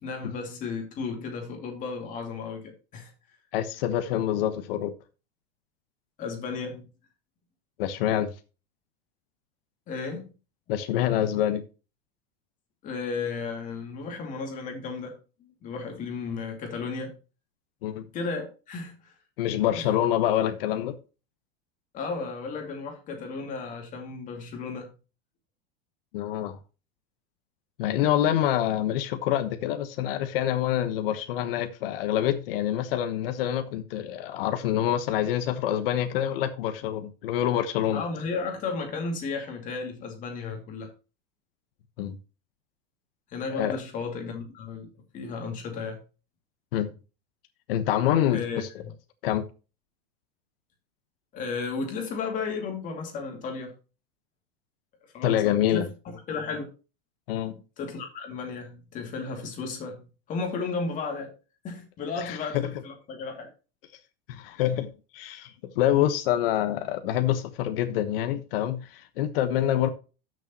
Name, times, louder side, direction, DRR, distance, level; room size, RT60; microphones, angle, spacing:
voice 1, 0.0-3.1 6.2-6.9 9.9-10.3 12.8-17.2 18.1-19.1 19.8-19.9 21.9-24.9 37.9-40.9 43.3-44.9 45.1-46.0 48.3-48.6 51.3-53.7 55.0-56.7 57.8-61.3 61.6-63.5, left 4 dB, 25° left, 2.5 m, -34 dB
voice 2, 3.5-4.9 7.8-8.3 10.7-11.6 17.8-18.1 19.4-21.0 26.1-26.6 27.8-38.0 42.0-42.2 43.5-43.8 46.7-46.9 47.7-48.7 49.2-49.4 55.2-55.9 57.3-57.5 62.2-62.7 64.3-69.9, left 11 dB, 65° left, 1.2 m, -26 dB
12.5 x 6.7 x 3.0 m
supercardioid pair, 170°, 30 cm